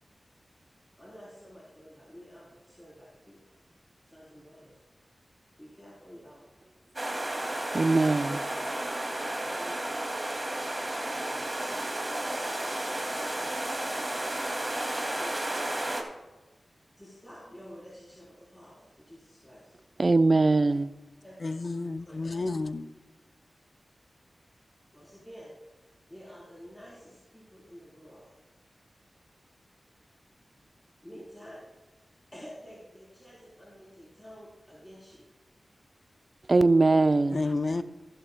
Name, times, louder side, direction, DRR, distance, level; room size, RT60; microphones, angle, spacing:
voice 1, 1.0-3.6 4.0-4.8 5.6-6.5 7.6-8.1 9.1-9.9 10.9-11.5 15.1-16.0 17.0-19.8 21.2-21.3 22.0-22.5 24.9-25.5 26.1-28.3 29.1-29.2 31.0-31.7 31.9-35.3, equal, 15° left, 3.6 m, -50 dB
sound 1, 7.0-16.0, right 1 dB, 25° right, 2.3 m, -32 dB
voice 2, 7.7-8.4 20.0-20.9 36.5-37.4, right 3 dB, 50° right, 0.5 m, -21 dB
voice 3, 21.4-22.9 37.3-37.8, left 3 dB, 55° left, 0.5 m, -31 dB
15.0 x 11.5 x 2.2 m
cardioid pair, 50°, 0 cm